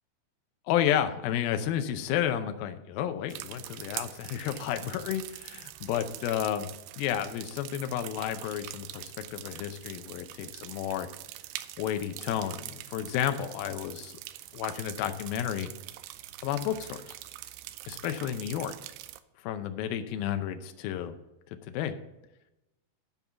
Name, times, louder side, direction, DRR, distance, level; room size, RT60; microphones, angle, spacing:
voice 1, 0.7-6.7 7.0-11.1 11.8-14.2 14.5-15.7 16.4-17.2 17.9-18.7 19.4-21.1 21.7-21.9, left 10 dB, 75° left, 8 dB, 2.3 m, -31 dB
sound 1, 3.3-19.2, right 15 dB, 85° right, 2.6 m, -44 dB
12.5 x 5.4 x 5.9 m, 0.95 s
omnidirectional pair, 4.8 m